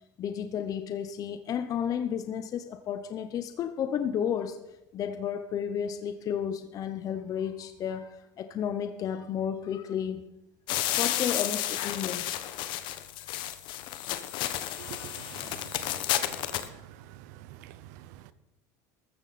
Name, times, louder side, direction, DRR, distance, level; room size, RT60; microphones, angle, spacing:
voice 1, 0.2-4.6 4.9-10.3 11.0-12.5, left 8 dB, 40° left, 0.8 m, -32 dB
sound 1, 10.7-16.7, left 13 dB, 60° left, 1.2 m, -32 dB
voice 2, 14.8-16.3 17.6-17.8, right 13 dB, 80° right, 0.9 m, -46 dB
14.0 x 14.0 x 4.2 m
supercardioid pair, 120°, 9 cm